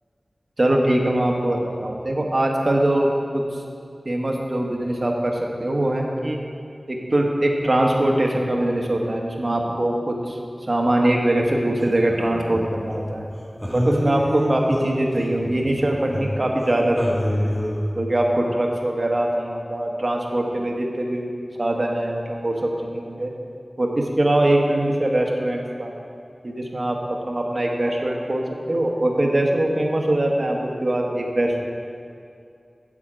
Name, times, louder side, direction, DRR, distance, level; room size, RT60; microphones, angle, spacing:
voice 1, 0.6-3.4 4.0-6.4 6.9-10.4 10.7-13.2 13.7-17.5 18.0-21.3 21.6-23.3 23.8-25.9 26.4-31.6, right 1 dB, 50° right, 0 dB, 1.1 m, -22 dB
sound 1, 11.8-13.2 13.6-16.7 17.0-17.9, equal, ahead, 1.3 m, -27 dB
8.5 x 7.3 x 5.0 m, 2.4 s
wide cardioid pair, 60°, 0 cm